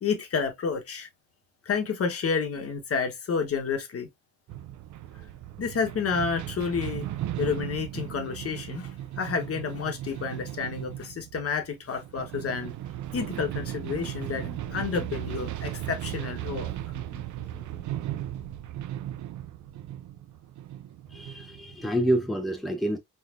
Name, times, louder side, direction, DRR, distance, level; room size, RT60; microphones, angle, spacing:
voice 1, 0.0-1.1 1.7-4.1 5.6-7.1 7.4-8.9 9.2-12.7 13.1-17.2 17.5-17.6, left 5 dB, 50° left, 1.2 m, -30 dB
sound 1, 4.5-22.0, right 13 dB, 75° right, 0.6 m, -36 dB
voice 2, 21.1-23.0, right 1 dB, ahead, 0.9 m, -27 dB
4.0 x 3.4 x 2.5 m
cardioid pair, 90°, 30 cm